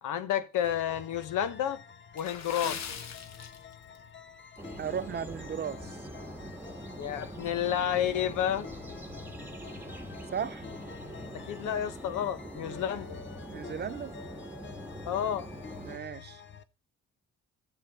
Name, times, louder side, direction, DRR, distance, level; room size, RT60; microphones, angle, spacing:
voice 1, 0.0-1.8 2.1-2.9 7.0-8.7 11.3-13.2 15.0-15.5, left 10 dB, 85° left, 1.0 m, -30 dB
sound 1, 0.6-16.6, left 7 dB, 40° left, 0.8 m, -48 dB
Water / Splash splatter, 2.1-4.0 4.3-4.6 5.1-5.3 5.8-5.9, left 7 dB, 60° left, 1.2 m, -41 dB
sound 2, 4.6-16.0, right 1 dB, 5° right, 1.5 m, -44 dB
voice 2, 4.8-6.1 10.3-10.6 13.5-14.1 15.8-16.4, right 8 dB, 35° right, 0.4 m, -36 dB
11.5 x 7.6 x 4.1 m
cardioid pair, 90°, 30 cm